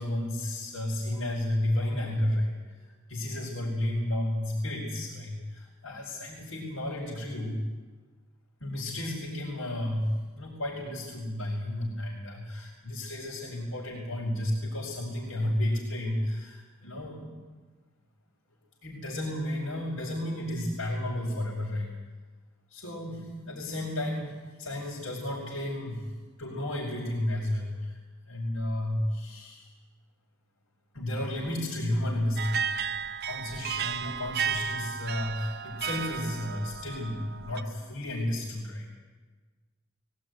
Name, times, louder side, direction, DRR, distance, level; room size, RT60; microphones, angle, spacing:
voice 1, 0.0-2.5 2.8-7.6 8.6-17.3 18.8-21.9 22.7-26.0 26.4-28.0 28.3-29.7 30.9-32.8 33.2-38.9, left 1 dB, 90° left, -5 dB, 5.3 m, -32 dB
sound 1, 32.4-37.6, right 7 dB, 50° right, 0.7 m, -33 dB
22.0 x 17.5 x 9.5 m, 1.4 s
head